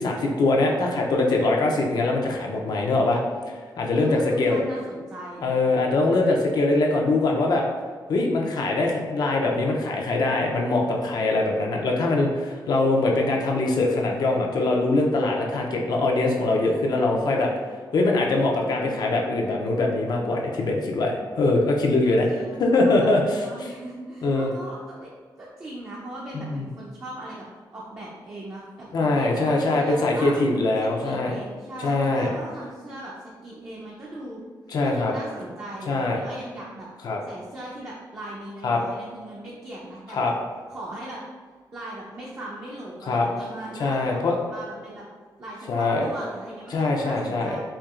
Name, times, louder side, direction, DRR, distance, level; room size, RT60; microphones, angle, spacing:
voice 1, 0.0-4.6 5.4-7.6 8.1-17.5 17.9-22.3 22.6-23.5 24.2-24.5 26.3-26.7 28.9-31.3 31.8-32.3 34.7-35.1 35.9-36.2 37.0-37.2 38.6-38.8 40.1-40.3 43.0-43.3 43.8-44.4 45.7-46.1 46.7-47.6, left 2 dB, 60° left, 0 dB, 0.5 m, -23 dB
voice 2, 4.0-5.6 18.6-19.1 22.0-25.1 25.4-27.5 27.7-30.4 30.8-34.4 34.8-36.9 37.3-40.3 40.7-41.2 41.7-45.0 45.4-47.6, right 1 dB, 30° right, -5 dB, 0.5 m, -39 dB
4.4 x 2.7 x 2.4 m, 1.5 s
wide cardioid pair, 160°, 8 cm